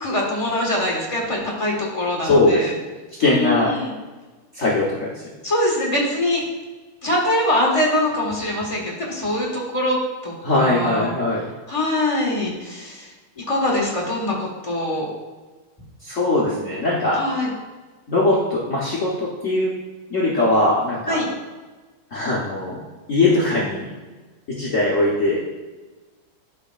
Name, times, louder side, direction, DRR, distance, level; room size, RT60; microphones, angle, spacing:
voice 1, 0.0-2.7 3.2-3.9 5.4-6.4 7.0-10.0 10.2-11.1 11.7-13.1 13.4-15.1 17.1-17.5 21.1-21.3, left 1 dB, 20° left, -3 dB, 1.3 m, -23 dB
voice 2, 2.2-2.7 3.2-3.7 4.5-5.1 10.4-11.5 16.0-17.2 18.1-19.7 20.1-21.2 22.1-22.8 23.1-23.8 24.6-25.4, left 2 dB, 45° left, -6 dB, 1.2 m, -20 dB
11.0 x 5.1 x 2.4 m, 1.3 s
omnidirectional pair, 2.4 m